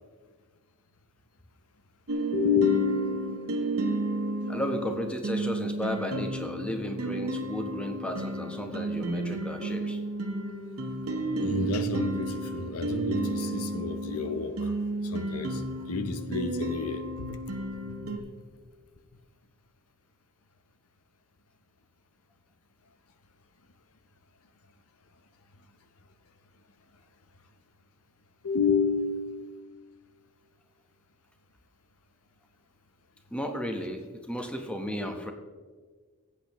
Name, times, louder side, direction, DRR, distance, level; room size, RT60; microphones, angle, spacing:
sound 1, 2.1-18.2, right 2 dB, 80° right, 1.1 m, -32 dB
voice 1, 2.3-3.5 4.4-4.5 11.4-14.7 15.0-17.4 17.9-18.0 28.4-29.6, left 4 dB, 75° left, 9 dB, 0.8 m, -30 dB
voice 2, 4.5-10.0 33.3-35.3, equal, 5° left, 4 dB, 1.0 m, -34 dB
16.0 x 8.4 x 3.1 m, 1.5 s
head